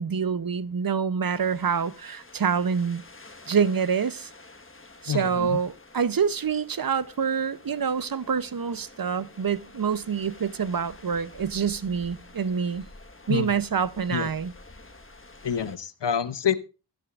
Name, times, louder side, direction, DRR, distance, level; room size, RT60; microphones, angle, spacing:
voice 1, 0.0-3.0 3.5-4.3 5.0-12.8 13.3-14.5, right 6 dB, 55° right, 0.7 m, -26 dB
sound 1, 1.2-15.8, left 2 dB, 30° left, 1.3 m, -49 dB
voice 2, 5.1-5.6 13.3-13.5 14.1-14.3 15.4-16.5, left 8 dB, 90° left, 0.8 m, -27 dB
14.0 x 13.0 x 2.4 m
wide cardioid pair, 65°, 41 cm